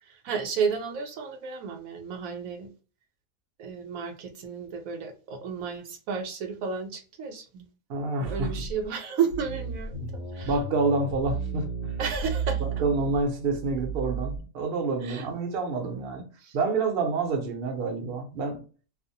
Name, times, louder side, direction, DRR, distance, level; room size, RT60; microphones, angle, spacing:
voice 1, 0.0-2.7 3.6-7.7 8.2-10.5 12.0-12.6 15.0-15.3 16.4-16.5, right 6 dB, 75° right, 1.0 m, -32 dB
voice 2, 7.9-8.5 9.9-10.1 10.4-12.0 12.6-18.6, right 3 dB, 55° right, 0.7 m, -28 dB
sound 1, 8.2-8.9 9.3-14.4, right 5 dB, 60° left, 0.8 m, -33 dB
2.5 x 2.0 x 2.7 m
omnidirectional pair, 1.5 m